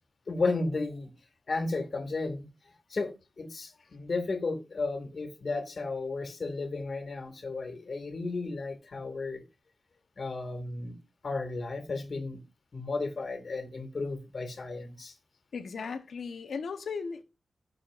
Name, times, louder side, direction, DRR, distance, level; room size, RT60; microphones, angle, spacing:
voice 1, 0.3-1.1 1.5-2.5 2.9-9.4 10.2-11.0 11.2-12.4 12.7-15.1, left 3 dB, 55° left, 2.1 m, -33 dB
voice 2, 15.5-17.2, left 5 dB, 85° left, 1.0 m, -36 dB
17.5 x 6.7 x 2.5 m
wide cardioid pair, 110°, 0 cm